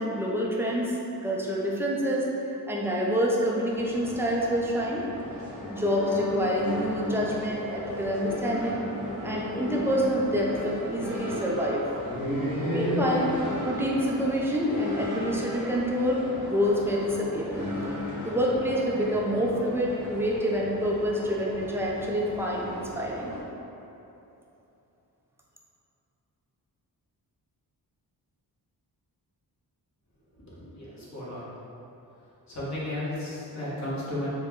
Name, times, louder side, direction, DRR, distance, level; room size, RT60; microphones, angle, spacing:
voice 1, 0.0-2.3 2.7-5.1 5.7-8.8 9.2-11.9 12.7-13.4 13.7-17.6 18.3-23.3, equal, 5° right, -3 dB, 0.5 m, -27 dB
sound 1, 3.7-23.4, left 1 dB, 65° left, 1.4 m, -35 dB
voice 2, 30.3-31.5 32.5-34.3, left 1 dB, 45° left, -9 dB, 1.3 m, -34 dB
4.3 x 2.2 x 3.6 m, 2.9 s
wide cardioid pair, 90°, 39 cm